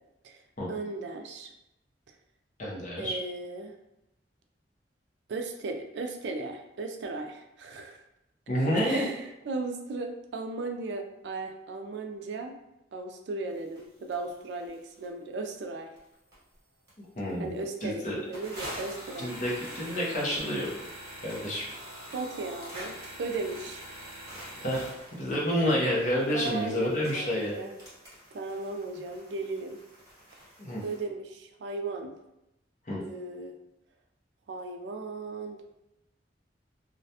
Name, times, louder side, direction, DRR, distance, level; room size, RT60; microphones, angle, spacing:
voice 1, 0.7-1.5 3.0-3.7 5.3-8.0 8.8-9.2 9.5-12.6 12.9-15.9 17.4-19.3 22.1-22.9 23.2-23.9 26.3-27.7 28.3-29.8 30.8-32.1 33.0-33.5 34.5-35.6, right 3 dB, 70° right, 5 dB, 0.3 m, -36 dB
voice 2, 2.6-3.1 8.5-9.1 17.0-17.5 17.8-18.2 19.2-20.9 21.2-21.6 24.6-27.6 30.6-30.8 32.9-33.0, equal, 45° left, -4 dB, 0.7 m, -29 dB
sound 1, 13.8-13.9 14.1-14.2 14.7-15.1 15.5-15.6 16.0-16.6 16.9-17.0 17.3-17.4 17.6-17.8 18.3-31.0, equal, 20° right, 0.9 m, -45 dB
2.4 x 2.1 x 2.7 m, 0.86 s
head